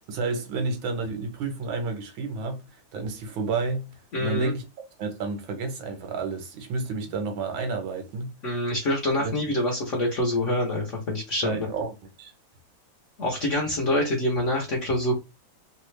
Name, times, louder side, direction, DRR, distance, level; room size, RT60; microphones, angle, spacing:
voice 1, 0.1-3.9 4.2-4.7 5.0-8.4 9.2-9.3 11.4-11.9 12.2-12.3, right 4 dB, 75° right, 1.6 m, -31 dB
voice 2, 4.1-4.5 8.4-11.7 13.2-15.2, left 1 dB, 50° left, 1.0 m, -26 dB
3.4 x 2.3 x 3.1 m
omnidirectional pair, 2.2 m